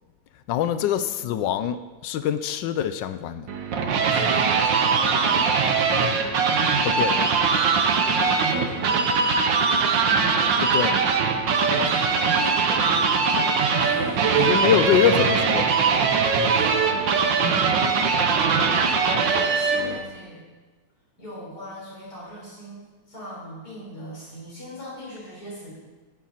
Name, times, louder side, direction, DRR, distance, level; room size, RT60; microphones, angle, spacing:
voice 1, 0.5-3.5 6.8-7.2 10.6-11.0 14.4-15.8, left 9 dB, 70° left, 11 dB, 1.1 m, -24 dB
sound 1, 3.5-20.0, right 5 dB, 60° right, 1.6 m, -21 dB
voice 2, 4.1-5.4 8.2-9.5 11.7-13.3 13.8-14.5 16.4-18.4 19.2-20.4 21.2-25.7, left 1 dB, 45° left, -6 dB, 5.6 m, -39 dB
12.5 x 11.0 x 4.3 m, 1.3 s
omnidirectional pair, 2.4 m